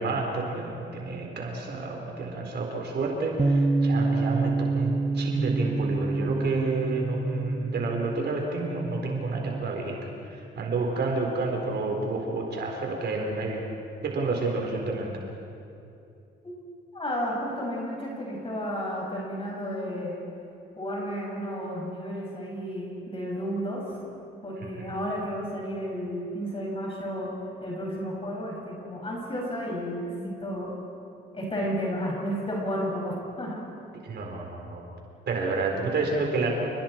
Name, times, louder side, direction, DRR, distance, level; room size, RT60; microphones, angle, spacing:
voice 1, 0.0-10.0 10.3-13.6 14.0-15.1 24.6-24.9 34.0-34.8 35.3-36.5, right 3 dB, 55° right, 0 dB, 4.1 m, -29 dB
Bass guitar, 3.4-9.6, right 3 dB, 20° right, 1.0 m, -28 dB
voice 2, 16.9-20.2 20.8-23.8 24.4-27.3 27.6-30.7 31.3-33.6, equal, 30° left, -3 dB, 6.5 m, -32 dB
29.5 x 19.5 x 4.5 m, 2.7 s
cardioid pair, 90°, 20 cm